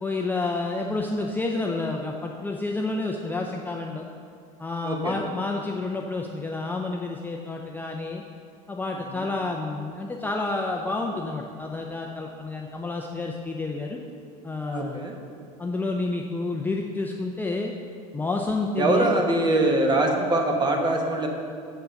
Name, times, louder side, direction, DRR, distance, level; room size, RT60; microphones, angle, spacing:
voice 1, 0.0-4.1 4.6-8.2 8.7-14.0 14.4-15.0 15.6-17.7 18.1-19.2, left 3 dB, 10° left, 0 dB, 0.5 m, -29 dB
voice 2, 4.8-5.1 9.2-9.3 14.7-15.1 18.8-21.3, right 2 dB, 25° right, 2 dB, 1.2 m, -23 dB
7.1 x 6.8 x 5.2 m, 2.3 s
supercardioid pair, 110°, 19 cm